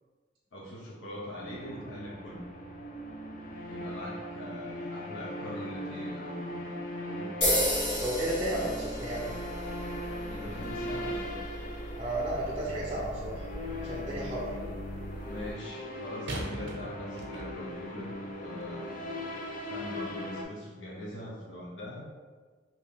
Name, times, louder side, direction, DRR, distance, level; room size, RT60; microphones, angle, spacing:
voice 1, 0.5-2.5 3.7-6.8 7.0-7.6 8.3-8.7 10.3-11.4 14.6-14.7 15.3-18.1 18.4-19.0 19.7-22.1, left 1 dB, 90° left, -5 dB, 0.7 m, -42 dB
sound 1, 1.4-20.4, left 1 dB, 45° left, 0.4 m, -40 dB
sound 2, 7.4-15.5, equal, 65° left, 1.2 m, -35 dB
voice 2, 8.0-9.3 12.0-13.5 13.8-14.5, right 1 dB, 25° right, -5 dB, 0.4 m, -33 dB
sound 3, 13.5-13.9 16.3-17.8 18.6-18.7, right 1 dB, 80° right, 0.6 m, -41 dB
2.8 x 2.6 x 3.4 m, 1.4 s
head